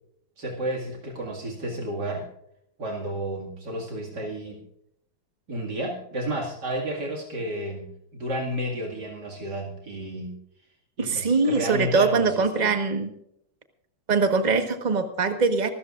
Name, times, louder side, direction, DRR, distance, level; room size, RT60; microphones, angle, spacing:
voice 1, 0.4-2.3 2.8-4.6 5.5-10.4 11.0-12.3 12.5-12.7, right 1 dB, 55° right, -1 dB, 2.8 m, -31 dB
voice 2, 11.0-13.1 14.1-15.7, right 4 dB, 25° right, 7 dB, 1.3 m, -22 dB
26.0 x 13.0 x 2.5 m, 0.75 s
omnidirectional pair, 2.2 m